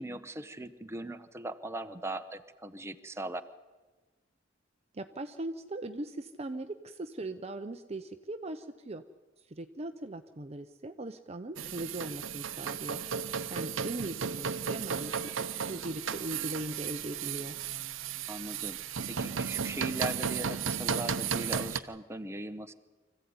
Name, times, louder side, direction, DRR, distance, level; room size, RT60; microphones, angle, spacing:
voice 1, 0.0-3.4 18.3-18.8 19.1-22.7, right 1 dB, 15° right, 7 dB, 1.0 m, -39 dB
voice 2, 4.9-9.0 9.5-13.0 13.5-17.6, right 2 dB, 35° right, 7 dB, 0.8 m, -39 dB
sound 1, 11.6-21.8, right 7 dB, 80° right, 0.9 m, -34 dB
24.5 x 15.5 x 9.6 m, 1.3 s
head